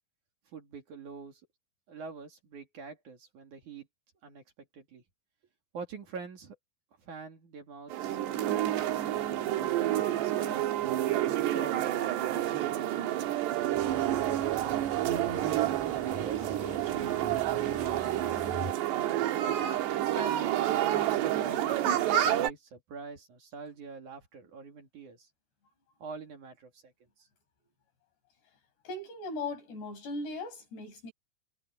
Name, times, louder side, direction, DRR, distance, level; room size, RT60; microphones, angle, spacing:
voice 1, 0.5-1.4 1.9-3.9 4.2-4.4 4.7-5.0 5.7-6.6 7.0-10.7 11.4-14.7 15.5-19.3 20.0-25.3 26.0-27.3, right 4 dB, 50° right, 3.6 m, -45 dB
sound 1, 7.9-22.5, right 12 dB, 85° right, 3.7 m, -29 dB
sound 2, 13.7-18.7, left 1 dB, 10° left, 3.5 m, -45 dB
voice 2, 28.9-31.1, left 2 dB, 75° left, 8.8 m, -38 dB
omnidirectional pair, 4.8 m